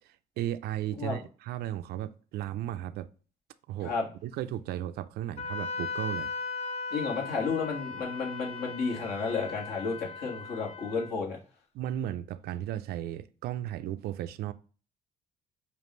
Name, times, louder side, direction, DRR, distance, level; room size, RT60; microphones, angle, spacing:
voice 1, 0.4-3.1 3.7-3.9 4.2-6.3 11.7-14.5, right 12 dB, 70° right, 0.4 m, -35 dB
Wind instrument woodwind instrument, 5.4-11.1, left 4 dB, 40° left, 0.6 m, -38 dB
voice 2, 6.9-11.4, left 4 dB, 65° left, 1.7 m, -32 dB
5.1 x 2.5 x 3.0 m
cardioid pair, 110°, 17 cm